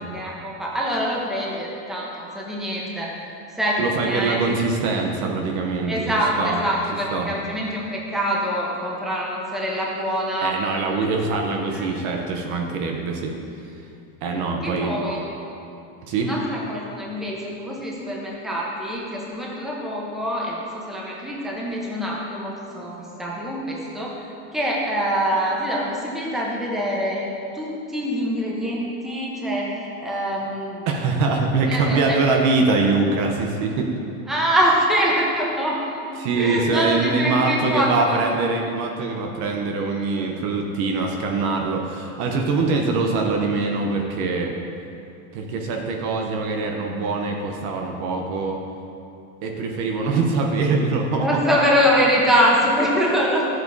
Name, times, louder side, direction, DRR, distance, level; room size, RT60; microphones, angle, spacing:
voice 1, 0.0-3.1 3.6-4.4 5.9-10.5 11.1-11.2 11.7-12.1 14.6-15.2 16.2-27.3 27.5-30.8 31.7-32.2 34.3-38.2 51.2-53.5, equal, ahead, -4 dB, 0.9 m, -24 dB
voice 2, 3.8-6.1 6.4-6.6 7.1-7.3 10.4-13.3 14.2-15.0 16.0-16.3 30.9-33.9 36.2-44.5 45.3-48.6 49.4-51.3, right 3 dB, 40° right, 2 dB, 0.9 m, -23 dB
12.0 x 7.7 x 2.7 m, 2.6 s
supercardioid pair, 145°, 43 cm